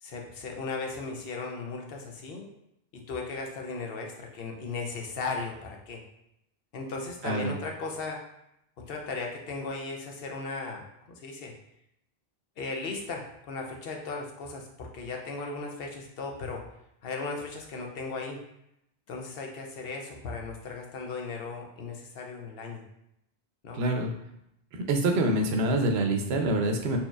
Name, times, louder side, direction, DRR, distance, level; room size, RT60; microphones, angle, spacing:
voice 1, 0.0-2.5 3.1-6.0 6.7-8.2 8.9-11.5 12.6-16.6 17.0-18.4 19.1-22.8 23.6-23.8, left 3 dB, 70° left, 1 dB, 0.8 m, -36 dB
voice 2, 7.2-7.5 23.7-24.1 24.7-27.0, right 1 dB, 90° right, 4 dB, 0.8 m, -26 dB
4.4 x 2.7 x 2.3 m, 0.80 s
omnidirectional pair, 1.0 m